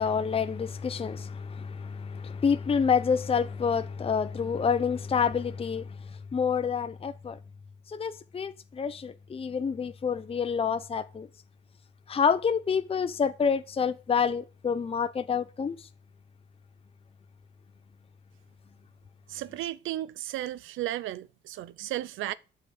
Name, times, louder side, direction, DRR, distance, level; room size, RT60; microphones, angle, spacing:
voice 1, 0.0-5.9 6.3-7.4 7.9-11.3 12.1-15.8, left 6 dB, 30° left, 0.7 m, -28 dB
voice 2, 19.3-22.3, right 14 dB, 85° right, 0.6 m, -34 dB
9.2 x 5.8 x 8.0 m
cardioid pair, 90°, 20 cm